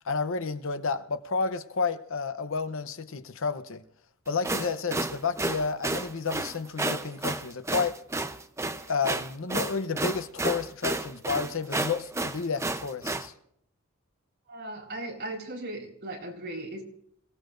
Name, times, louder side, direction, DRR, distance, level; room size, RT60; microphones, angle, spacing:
voice 1, 0.0-3.8 4.3-8.0 8.9-13.3, left 4 dB, 65° left, 0.8 m, -31 dB
sound 1, 4.3-13.3, right 2 dB, 15° right, 0.7 m, -31 dB
voice 2, 14.5-16.8, right 1 dB, 55° right, 4.5 m, -37 dB
27.0 x 17.0 x 2.6 m
head